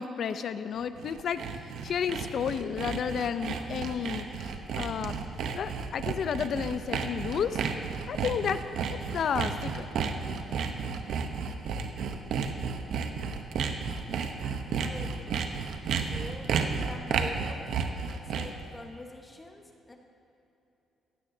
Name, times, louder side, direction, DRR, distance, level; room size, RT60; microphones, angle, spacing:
voice 1, 0.0-5.2 5.5-7.6 8.1-8.6 8.9-9.9, left 7 dB, 60° left, 11 dB, 0.6 m, -32 dB
Sawing, 0.8-18.6, right 6 dB, 75° right, 0.9 m, -32 dB
voice 2, 14.8-15.5 15.9-20.0, left 2 dB, 20° left, 3 dB, 1.2 m, -45 dB
16.0 x 15.5 x 2.8 m, 3.0 s
cardioid pair, 90°, 0 cm